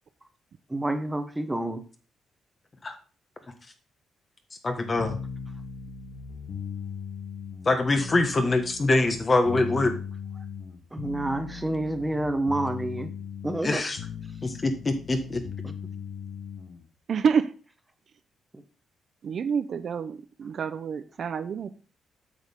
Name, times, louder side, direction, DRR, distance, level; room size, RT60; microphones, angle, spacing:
voice 1, 0.7-1.8 10.9-13.1 13.4-13.8 15.6-15.7, right 1 dB, 10° right, 8 dB, 1.0 m, -28 dB
voice 2, 4.6-5.1 7.6-9.9 13.6-14.0 14.4-15.4, left 2 dB, 30° left, 6 dB, 1.4 m, -24 dB
sound 1, 5.0-16.8, left 6 dB, 70° left, 1.3 m, -38 dB
voice 3, 17.1-17.5 19.2-21.7, right 6 dB, 55° right, 12 dB, 0.6 m, -27 dB
8.3 x 6.4 x 3.6 m, 0.36 s
cardioid pair, 110°, 0 cm